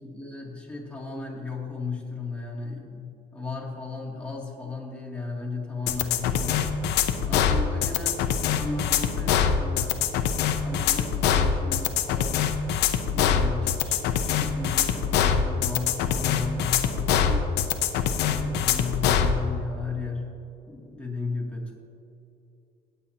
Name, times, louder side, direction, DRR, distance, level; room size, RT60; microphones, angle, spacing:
voice 1, 0.0-6.7 7.3-10.0 10.6-12.5 13.1-17.5 18.2-20.3 20.7-21.7, left 4 dB, 5° left, -4 dB, 2.6 m, -35 dB
sound 1, 5.9-19.3, left 8 dB, 85° left, 0.8 m, -24 dB
17.5 x 8.5 x 2.9 m, 2.8 s
cardioid pair, 110°, 17 cm